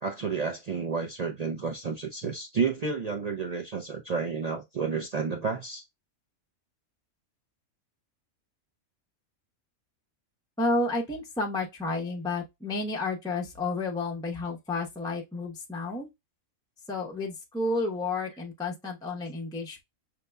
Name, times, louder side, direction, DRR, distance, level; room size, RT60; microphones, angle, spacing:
voice 1, 0.0-5.8, right 5 dB, 60° right, 0.4 m, -31 dB
voice 2, 10.6-16.1 16.9-19.8, left 2 dB, 5° left, 0.6 m, -31 dB
6.6 x 2.8 x 2.2 m
omnidirectional pair, 1.5 m